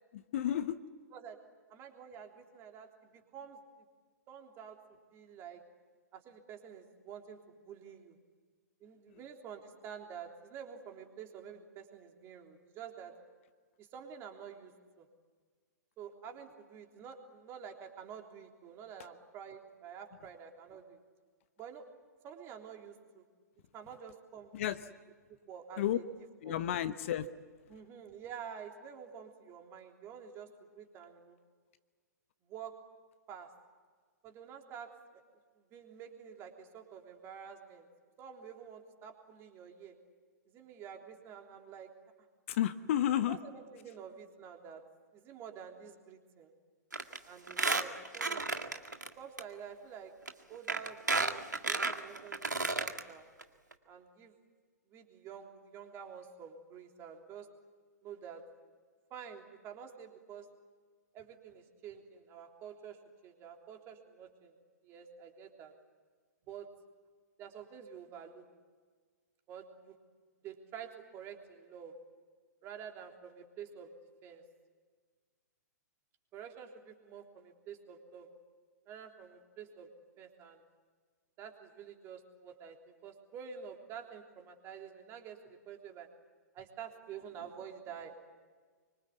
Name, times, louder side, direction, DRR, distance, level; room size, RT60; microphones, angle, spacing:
voice 1, 0.1-0.8 9.1-9.2 24.5-24.9 25.8-26.0 26.4-27.3 42.5-43.4, left 11 dB, 45° left, 12 dB, 1.0 m, -32 dB
voice 2, 1.7-3.6 4.3-4.8 5.1-5.6 6.1-8.2 8.8-13.2 13.8-14.7 15.0-15.1 16.0-21.0 21.6-21.9 22.2-23.2 23.7-24.5 25.3-26.0 26.5-26.6 27.7-31.4 32.4-32.8 33.3-33.5 34.2-34.9 35.6-37.9 38.2-40.0 40.5-41.9 43.3-44.8 45.1-46.5 47.3-48.4 49.2-50.1 50.5-52.5 52.8-53.3 53.9-54.3 54.9-57.5 58.0-58.4 59.1-60.5 61.1-63.0 63.2-64.5 64.8-65.7 66.5-66.7 67.4-68.4 69.5-70.0 70.4-71.9 72.6-73.9 74.2-74.4 76.3-78.3 78.9-79.9 80.2-80.6 81.4-86.1 86.5-88.2, right 7 dB, 25° right, 3 dB, 3.4 m, -49 dB
Squeak, 46.9-47.2 47.5-49.1 49.4-49.5 50.3-50.4 50.7-53.0 53.4-53.5 53.7-53.8, right 3 dB, 80° right, 1.9 m, -32 dB
26.0 x 24.5 x 8.4 m, 1.5 s
figure-of-eight pair, 115°, 9 cm